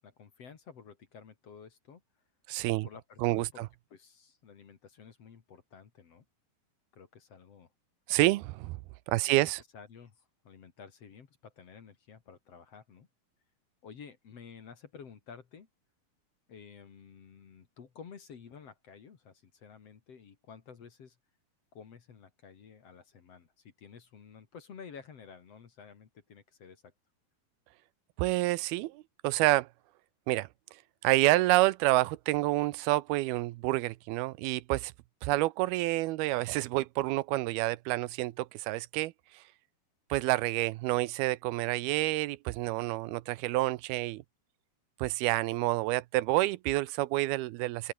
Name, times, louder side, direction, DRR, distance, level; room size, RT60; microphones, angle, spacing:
voice 1, 0.0-2.0 2.8-3.6 3.9-6.2 6.9-7.7 9.3-13.1 13.8-15.7 16.5-21.2 21.7-26.9, left 6 dB, 45° left, 2.8 m, -52 dB
voice 2, 2.5-2.9 3.2-3.7 8.1-8.8 9.1-9.6 28.2-29.7 30.3-30.5 31.0-34.9 35.2-39.4 40.1-44.2 45.0-47.9, right 18 dB, 80° right, 2.6 m, -28 dB
open air
omnidirectional pair, 4.4 m